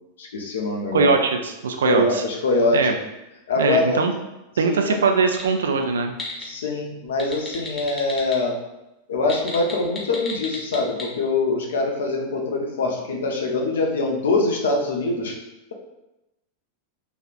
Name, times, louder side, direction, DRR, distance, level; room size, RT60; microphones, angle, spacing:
voice 1, 0.2-1.2 1.8-2.9 3.5-4.0 4.6-5.0 6.4-8.6 9.1-15.4, left 3 dB, 65° left, 1 dB, 0.5 m, -23 dB
voice 2, 0.9-2.2 2.7-2.9 3.6-4.1 4.6-6.1, right 5 dB, 65° right, 5 dB, 0.3 m, -21 dB
sound 1, 5.3-5.5 5.9-6.4 7.1-8.3 9.2-11.0, left 3 dB, 15° left, 0.7 m, -33 dB
3.3 x 2.3 x 2.4 m, 0.95 s
figure-of-eight pair, 90°, 0 cm